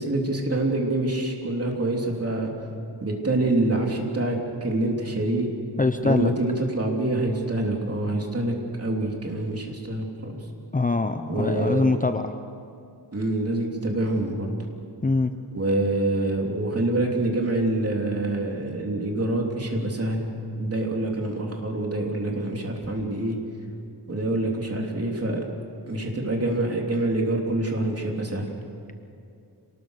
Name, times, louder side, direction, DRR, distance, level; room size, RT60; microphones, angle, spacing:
voice 1, 0.0-2.5 3.0-5.5 6.0-8.5 8.8-10.3 11.3-11.8 13.1-14.5 15.5-23.3 24.1-25.4 25.9-28.4, right 2 dB, 35° right, 0 dB, 3.3 m, -26 dB
voice 2, 5.8-6.3 10.7-12.3 15.0-15.3, left 3 dB, 20° left, 8 dB, 0.7 m, -23 dB
27.0 x 19.5 x 6.6 m, 2.5 s
wide cardioid pair, 125°, 41 cm